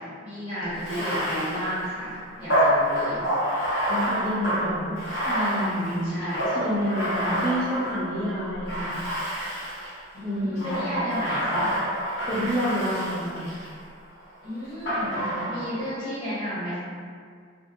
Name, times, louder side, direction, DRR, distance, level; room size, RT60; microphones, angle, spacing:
voice 1, 0.0-3.2 6.0-6.5 10.1-11.7 14.4-16.8, equal, 20° left, -12 dB, 1.1 m, -33 dB
Bathtub (filling or washing), 0.8-8.1 8.7-10.0 10.5-13.7 14.9-15.8, equal, 60° left, 0.9 m, -27 dB
voice 2, 3.9-5.0 5.2-6.0 6.5-9.0 10.2-10.9 12.3-13.6 15.2-15.6, equal, 15° right, -12 dB, 0.3 m, -29 dB
2.4 x 2.1 x 2.8 m, 2.1 s
head